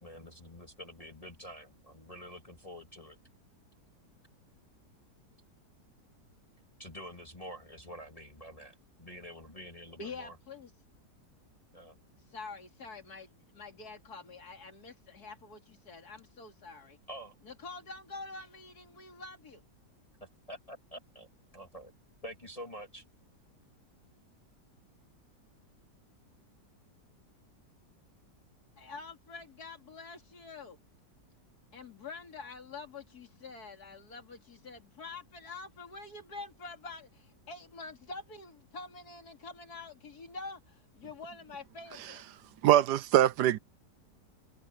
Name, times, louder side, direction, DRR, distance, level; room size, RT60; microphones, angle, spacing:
voice 1, 0.0-3.2 6.8-10.4 11.7-12.0 17.1-17.3 20.2-21.3 21.5-21.9 22.2-23.0, equal, 20° left, 2.7 m, -47 dB
voice 2, 10.0-10.7 12.3-17.0 17.4-19.6 28.8-30.8 31.7-42.2, left 3 dB, 60° left, 3.2 m, -46 dB
voice 3, 42.6-43.6, right 12 dB, 75° right, 1.2 m, -23 dB
omnidirectional pair, 1.8 m